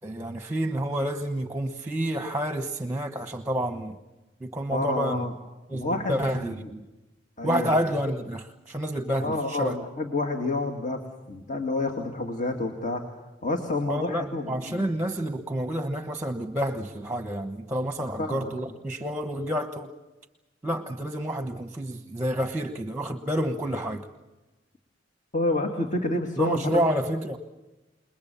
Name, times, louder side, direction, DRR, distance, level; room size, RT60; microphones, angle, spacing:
voice 1, 0.0-4.0 4.4-5.2 5.7-6.8 7.4-9.8 13.9-19.9 20.6-24.1 26.4-27.4, equal, 15° right, 8 dB, 1.2 m, -29 dB
voice 2, 4.7-5.3 5.7-6.7 7.4-7.8 9.2-11.0 11.3-13.0 13.4-15.0 18.2-18.5 25.3-26.6, left 2 dB, 40° left, 4 dB, 2.3 m, -29 dB
29.0 x 21.5 x 7.0 m, 1.1 s
head